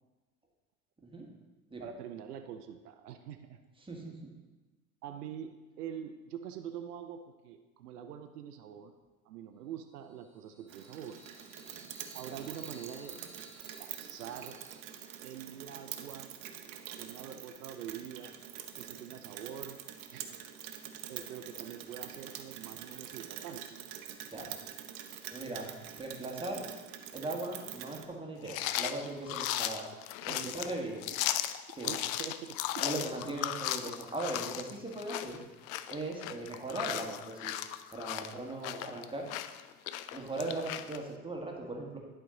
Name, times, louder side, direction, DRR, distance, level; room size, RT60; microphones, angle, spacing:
voice 1, 1.8-3.6 5.0-8.9 9.2-11.2 12.1-13.5 13.8-14.6 15.2-16.3 17.0-18.3 18.8-19.8 20.1-20.3 21.1-23.8 30.3-30.9 31.8-32.9, right 8 dB, 85° right, 8 dB, 0.6 m, -45 dB
voice 2, 3.8-4.1 24.3-24.5 25.3-26.6 27.1-29.9 30.3-31.0 31.8-31.9 32.8-35.4 35.9-37.5 37.9-39.3 40.1-42.0, right 2 dB, 10° right, 0 dB, 1.6 m, -39 dB
sound 1, 10.0-15.4, left 1 dB, 85° left, 1.5 m, -57 dB
Rain, 10.7-28.0, right 10 dB, 45° right, 0.8 m, -45 dB
sound 2, 28.4-41.0, left 13 dB, 65° left, 0.5 m, -36 dB
11.0 x 4.6 x 3.8 m, 1.2 s
hypercardioid pair, 80°, 45 cm